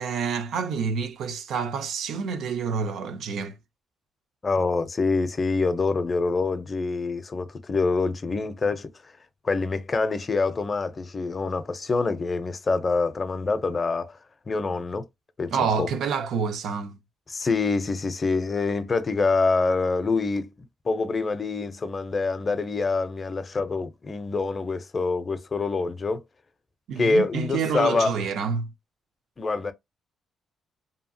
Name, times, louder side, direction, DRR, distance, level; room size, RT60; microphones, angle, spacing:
voice 1, 0.0-3.6 15.5-17.0 26.9-28.7, right 6 dB, 75° right, 0.5 m, -28 dB
voice 2, 4.4-8.9 9.4-14.2 14.5-15.0 15.4-15.9 17.3-20.5 20.9-26.2 27.0-28.1 29.4-29.7, left 3 dB, 35° left, 0.5 m, -25 dB
2.7 x 2.3 x 2.6 m
cardioid pair, 90°, 0 cm